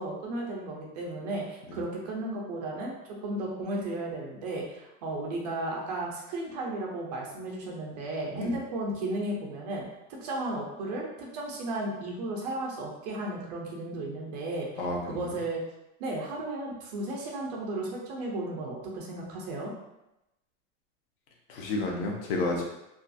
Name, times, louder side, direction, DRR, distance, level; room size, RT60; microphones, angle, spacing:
voice 1, 0.0-9.8 10.1-15.6 16.0-19.7, right 2 dB, 35° right, -2 dB, 0.4 m, -34 dB
voice 2, 14.8-15.4 21.5-22.6, left 2 dB, 50° left, 0 dB, 0.6 m, -31 dB
2.3 x 2.3 x 2.5 m, 0.90 s
supercardioid pair, 175°, 39 cm